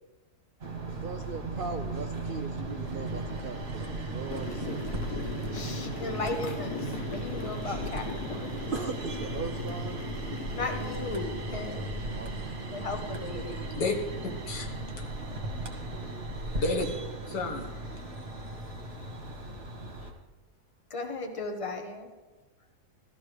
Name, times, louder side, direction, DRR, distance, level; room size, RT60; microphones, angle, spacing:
sound 1, 0.6-20.1, right 2 dB, 40° right, 1.8 m, -36 dB
voice 1, 0.9-4.8 5.1-5.2 8.7-10.0 11.5-11.7 12.1-12.9 13.3-13.7, right 5 dB, 75° right, 6 dB, 0.4 m, -39 dB
sound 2, 4.3-11.2, left 4 dB, 70° left, 1.4 m, -39 dB
voice 2, 5.5-8.5 10.5-12.0 12.7-13.7 20.9-22.1, left 3 dB, 20° left, 4 dB, 1.1 m, -36 dB
voice 3, 14.2-15.0 16.5-17.0 17.3-17.8, left 3 dB, 90° left, 2 dB, 2.1 m, -32 dB
15.5 x 13.5 x 3.4 m, 1.2 s
omnidirectional pair, 1.8 m